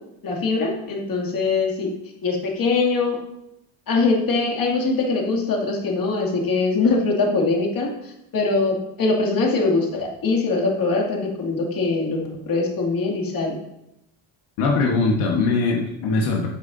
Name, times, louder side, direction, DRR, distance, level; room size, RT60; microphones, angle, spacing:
voice 1, 0.2-1.9 2.2-3.2 3.9-7.9 8.3-12.2 12.5-13.6, left 3 dB, 45° left, -1 dB, 2.6 m, -22 dB
voice 2, 14.6-16.5, left 3 dB, 90° left, 0 dB, 1.5 m, -21 dB
13.0 x 8.5 x 2.7 m, 0.84 s
cardioid pair, 125°, 48 cm